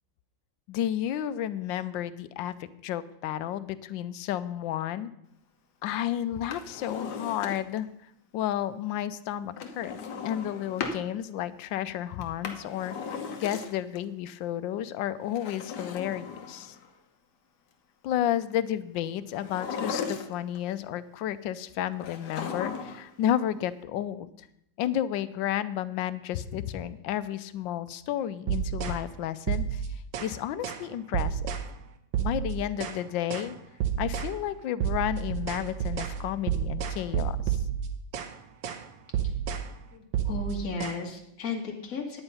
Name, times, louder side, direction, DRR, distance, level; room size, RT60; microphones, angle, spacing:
voice 1, 0.7-2.6 2.8-5.1 5.8-7.9 8.3-13.0 13.4-16.8 18.0-24.5 24.8-29.8 30.2-31.5 32.2-33.6 34.0-37.6, left 11 dB, 80° left, 14 dB, 1.3 m, -32 dB
Drawer open or close, 6.3-7.9 9.6-11.0 12.2-14.0 15.2-16.9 19.3-20.6 22.0-23.1 23.4-23.5, left 5 dB, 60° left, 1.5 m, -37 dB
sound 1, 28.5-29.0 29.5-30.4 30.6-30.9 31.1-31.7 32.1-33.0 33.3-33.5 33.8-34.4 34.8-38.4 38.6-38.9 39.1-39.7 40.1-40.9, right 9 dB, 80° right, 1.7 m, -30 dB
voice 2, 39.9-42.2, left 3 dB, 45° left, 1 dB, 2.0 m, -35 dB
10.0 x 8.8 x 5.5 m, 0.78 s
omnidirectional pair, 2.1 m